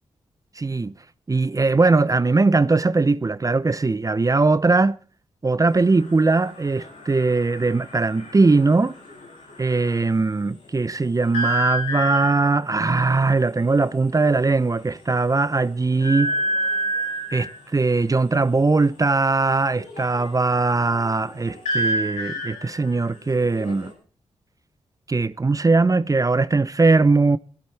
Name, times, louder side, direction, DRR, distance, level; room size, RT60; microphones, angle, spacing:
voice 1, 0.6-0.9 1.3-5.0 5.4-8.9 9.6-16.3 17.3-23.9 25.1-27.4, right 3 dB, 30° right, 0.6 m, -20 dB
sound 1, 5.7-10.1 11.3-12.6 13.7-13.8 14.1-14.4 14.8-14.9 16.0-17.6 19.8-23.9, equal, 90° left, 4.6 m, -29 dB
19.5 x 14.5 x 3.4 m
cardioid pair, 50°, 12 cm